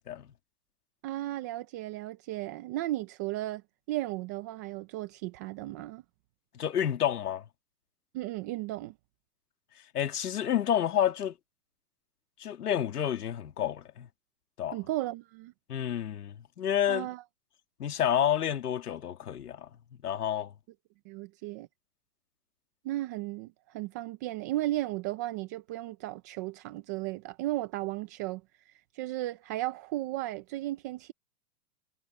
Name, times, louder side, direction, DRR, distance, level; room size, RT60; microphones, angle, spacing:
voice 1, 1.0-3.6 3.9-6.0 8.1-8.9 14.7-15.5 16.9-17.2 21.1-21.7 22.8-31.1, right 16 dB, 15° right, 0.3 m, -35 dB
voice 2, 6.5-7.4 9.9-11.3 12.4-14.1 14.6-14.8 15.7-17.1 17.8-19.7 20.0-20.5, left 10 dB, 80° left, 2.6 m, -29 dB
hypercardioid pair, 125°, 46 cm